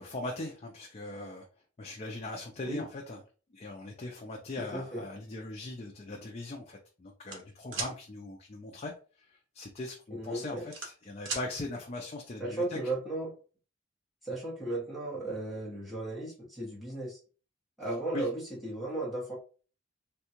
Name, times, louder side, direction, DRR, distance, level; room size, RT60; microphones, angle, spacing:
voice 1, 0.0-1.5 1.8-3.2 3.5-8.9 9.2-9.3 9.5-12.8 18.1-18.3, left 2 dB, 30° left, 1 dB, 0.4 m, -40 dB
voice 2, 4.6-5.0 10.1-10.7 12.4-13.3 14.2-17.2 17.8-19.3, right 2 dB, ahead, -6 dB, 0.9 m, -35 dB
sound 1, 7.3-7.9 9.6-9.8 10.2-11.5, right 4 dB, 60° right, 0.9 m, -37 dB
3.6 x 2.3 x 2.8 m, 0.38 s
head